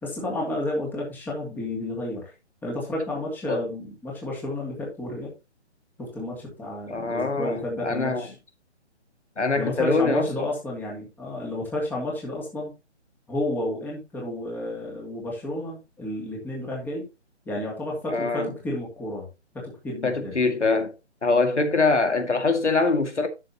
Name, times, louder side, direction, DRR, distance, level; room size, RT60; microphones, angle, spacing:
voice 1, 0.0-2.3 2.6-5.3 6.0-8.3 9.6-12.7 13.3-17.1 17.5-19.3 19.5-20.4, left 1 dB, 5° left, 2.6 m, -31 dB
voice 2, 6.9-8.3 9.4-10.5 18.1-18.5 20.0-20.9 21.2-23.3, left 3 dB, 80° left, 2.3 m, -23 dB
12.5 x 7.6 x 2.9 m
figure-of-eight pair, 145°, 35 cm